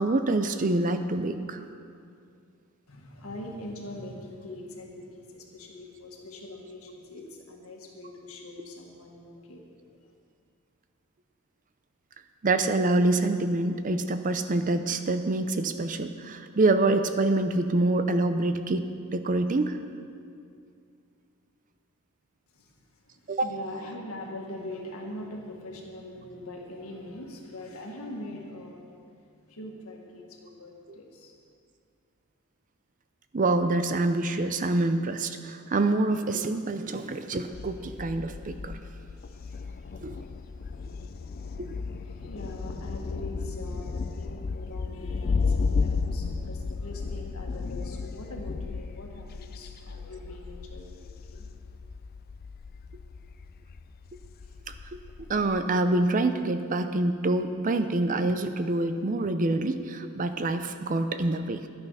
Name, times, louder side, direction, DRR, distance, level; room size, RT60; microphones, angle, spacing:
voice 1, 0.0-1.6 12.4-19.8 23.3-23.5 30.9-31.0 33.3-38.8 40.0-40.2 41.6-41.8 54.9-61.7, right 2 dB, 35° right, 9 dB, 0.5 m, -26 dB
voice 2, 2.9-9.6 22.5-22.7 23.1-29.0 29.4-31.3 41.9-51.4, left 1 dB, 75° left, 0 dB, 1.8 m, -42 dB
Thunder, 37.5-55.6, left 4 dB, 45° left, 0.4 m, -34 dB
11.5 x 9.3 x 5.6 m, 2.4 s
head